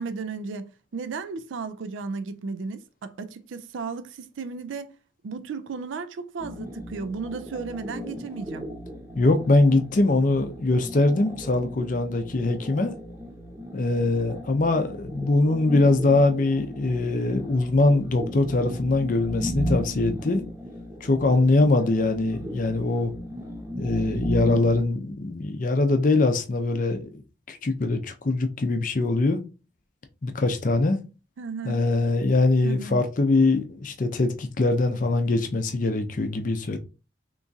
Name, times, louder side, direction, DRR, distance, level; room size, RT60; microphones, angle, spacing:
voice 1, 0.0-4.9 5.2-8.7 31.4-31.8 32.6-33.0, right 4 dB, 80° right, 0.4 m, -34 dB
sound 1, 6.4-24.8, equal, 15° right, 0.8 m, -36 dB
voice 2, 9.2-12.9 13.7-20.4 21.0-23.1 23.8-27.2 27.5-29.4 30.2-31.0 31.6-36.8, left 2 dB, 45° left, 0.5 m, -22 dB
3.5 x 3.0 x 2.6 m
head